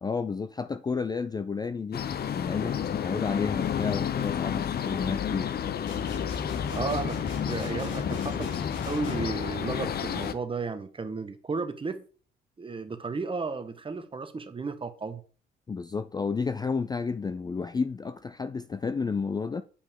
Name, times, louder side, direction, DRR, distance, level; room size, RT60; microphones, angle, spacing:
voice 1, 0.0-2.0 2.3-5.5 15.7-19.6, left 5 dB, 20° left, 0.3 m, -31 dB
sound 1, 1.9-10.3, left 8 dB, 50° left, 0.7 m, -31 dB
sound 2, 5.9-9.4, left 4 dB, 70° left, 2.4 m, -39 dB
voice 2, 6.7-8.5 8.8-12.0 12.6-15.2, right 4 dB, 25° right, 1.0 m, -33 dB
8.4 x 5.1 x 3.6 m
cardioid pair, 90°, 20 cm